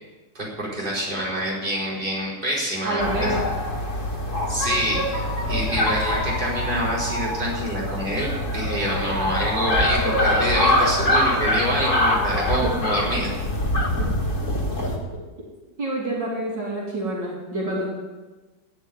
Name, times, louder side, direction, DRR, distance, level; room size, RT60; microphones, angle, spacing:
voice 1, 0.3-3.3 4.5-5.0 5.4-13.3, equal, 25° right, -6 dB, 4.9 m, -26 dB
voice 2, 2.8-3.5 12.6-12.7 14.0-14.1 14.7-15.0 15.8-17.9, right 1 dB, 80° right, -3 dB, 3.6 m, -28 dB
sound 1, 3.0-15.0, left 1 dB, 45° left, 2.4 m, -24 dB
16.0 x 6.6 x 9.6 m, 1.2 s
omnidirectional pair, 1.9 m